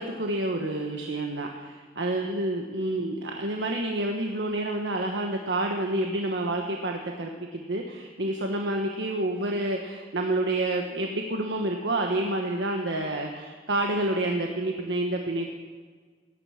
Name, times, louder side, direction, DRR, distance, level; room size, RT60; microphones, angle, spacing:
voice 1, 0.0-15.5, right 1 dB, 85° right, 2 dB, 1.3 m, -29 dB
17.0 x 11.0 x 6.5 m, 1.6 s
head